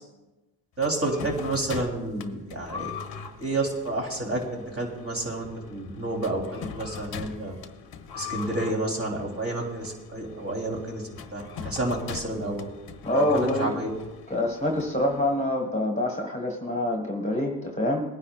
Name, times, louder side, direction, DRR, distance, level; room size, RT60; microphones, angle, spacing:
sound 1, 0.8-15.5, left 6 dB, 50° left, 1.0 m, -41 dB
voice 1, 0.8-2.9 3.4-6.4 6.7-7.6 8.1-12.7 13.1-13.9, right 2 dB, 30° right, -1 dB, 3.5 m, -30 dB
voice 2, 13.0-13.8 14.3-18.0, left 1 dB, 15° left, 1 dB, 1.7 m, -26 dB
21.5 x 9.9 x 2.5 m, 1.1 s
cardioid pair, 95°, 48 cm